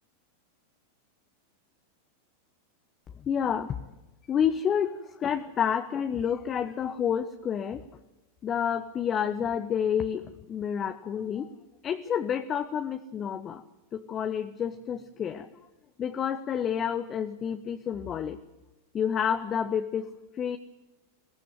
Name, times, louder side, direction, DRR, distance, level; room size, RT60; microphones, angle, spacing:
voice 1, 3.2-3.7 4.3-7.8 8.4-11.5 11.8-13.6 13.9-15.7 16.0-18.4 18.9-20.6, left 8 dB, 25° left, 8 dB, 1.1 m, -29 dB
22.0 x 19.0 x 7.5 m, 1.0 s
figure-of-eight pair, 90°, 0 cm